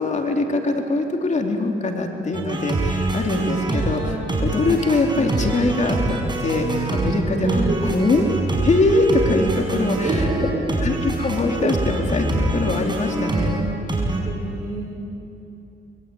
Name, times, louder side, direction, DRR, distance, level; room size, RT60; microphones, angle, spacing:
voice 1, 0.0-8.2 8.6-10.3 10.8-13.6, left 2 dB, 35° left, 3 dB, 3.0 m, -22 dB
sound 1, 2.3-14.2, right 2 dB, 20° right, 6.2 m, -24 dB
voice 2, 7.3-7.8 9.9-10.6 11.6-11.7 14.2-14.8, right 3 dB, 40° right, -3 dB, 6.0 m, -27 dB
25.5 x 23.0 x 9.3 m, 2.9 s
cardioid pair, 90°, 20 cm